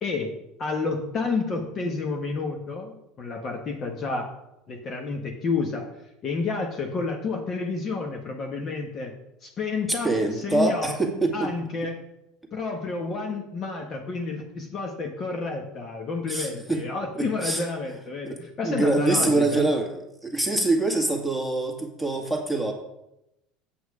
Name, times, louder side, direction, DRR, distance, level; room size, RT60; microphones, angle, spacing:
voice 1, 0.0-4.3 4.7-5.9 6.2-9.1 9.4-10.9 11.3-12.0 12.5-19.7, left 4 dB, 40° left, 2 dB, 1.4 m, -30 dB
voice 2, 10.0-11.5 16.3-16.8 17.1-17.7 18.3-19.9 20.2-22.7, right 2 dB, 5° left, 2 dB, 2.0 m, -25 dB
8.0 x 6.4 x 4.9 m, 0.88 s
supercardioid pair, 95°, 0 cm